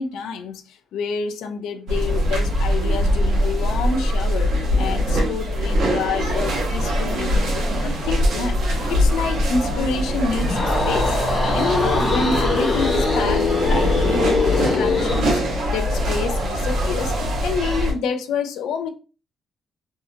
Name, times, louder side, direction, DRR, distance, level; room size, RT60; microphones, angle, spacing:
voice 1, 0.0-11.2 11.5-18.9, left 5 dB, 90° left, 0.4 m, -28 dB
sound 1, 1.9-17.9, equal, 75° right, 1.0 m, -22 dB
sound 2, 10.4-15.3, left 3 dB, 55° left, 0.9 m, -22 dB
2.7 x 2.4 x 2.6 m
cardioid pair, 120°, 0 cm